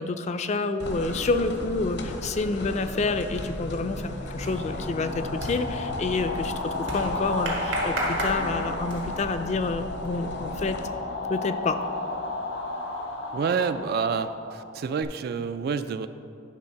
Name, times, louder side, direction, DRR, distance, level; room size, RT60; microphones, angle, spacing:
voice 1, 0.0-10.8 11.3-11.8, left 3 dB, 35° left, 9 dB, 0.4 m, -28 dB
sound 1, 0.8-10.8, left 1 dB, 65° left, 0.7 m, -37 dB
sound 2, 3.2-3.3 3.5-9.3, right 1 dB, 75° right, 1.6 m, -35 dB
sound 3, 3.9-15.0, left 2 dB, 85° left, 1.2 m, -33 dB
voice 2, 13.3-16.1, right 5 dB, 55° right, 11 dB, 0.3 m, -28 dB
11.5 x 3.9 x 5.6 m, 2.6 s
head